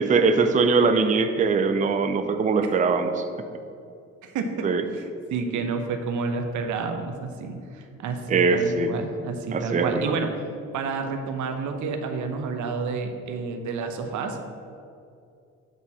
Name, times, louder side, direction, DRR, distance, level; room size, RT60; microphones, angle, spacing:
voice 1, 0.0-3.2 4.6-4.8 8.3-8.9 9.5-10.2, right 4 dB, 25° right, 7 dB, 0.5 m, -21 dB
voice 2, 4.2-4.7 4.9-10.3 10.7-14.4, right 4 dB, 75° right, 6 dB, 0.9 m, -30 dB
8.1 x 4.1 x 6.0 m, 2.5 s
cardioid pair, 90°, 30 cm